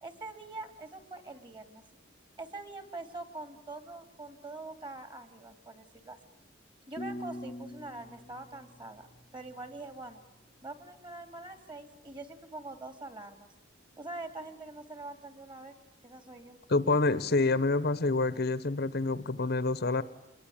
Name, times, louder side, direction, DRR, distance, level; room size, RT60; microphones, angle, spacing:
voice 1, 0.0-1.8 2.4-6.2 6.9-9.1 9.3-10.2 10.6-13.5 14.0-15.7 16.0-16.6, right 2 dB, 25° right, 10 dB, 2.9 m, -44 dB
sound 1, 7.0-9.9, left 1 dB, 25° left, 0.8 m, -44 dB
voice 2, 16.7-20.0, left 3 dB, 50° left, 16 dB, 1.0 m, -27 dB
27.0 x 22.0 x 8.7 m, 0.97 s
head